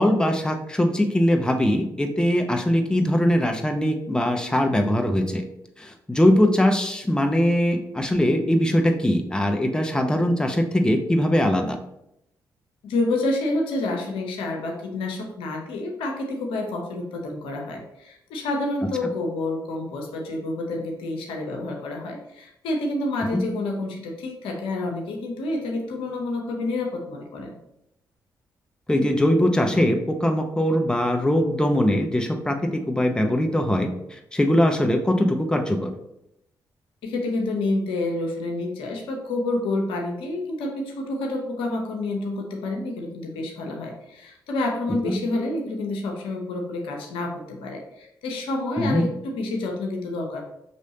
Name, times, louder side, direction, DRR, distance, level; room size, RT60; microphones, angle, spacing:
voice 1, 0.0-5.4 5.8-11.8 23.3-23.4 28.9-33.9 34.3-35.9 45.0-45.2 48.8-49.1, left 1 dB, 10° left, 4 dB, 0.7 m, -21 dB
voice 2, 12.8-27.6 37.0-50.4, left 2 dB, 80° left, 2 dB, 0.7 m, -28 dB
5.1 x 3.1 x 2.8 m, 0.80 s
hypercardioid pair, 45°, 9 cm